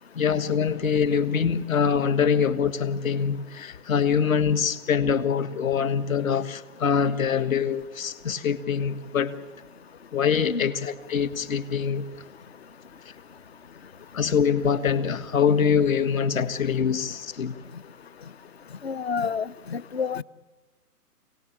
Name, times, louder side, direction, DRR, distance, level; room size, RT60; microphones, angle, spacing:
voice 1, 0.2-9.4 10.1-12.0 14.1-17.5, left 7 dB, 55° left, 1.8 m, -24 dB
voice 2, 18.8-20.2, left 5 dB, 40° left, 0.7 m, -29 dB
27.0 x 19.0 x 8.8 m
hypercardioid pair, 160°, 47 cm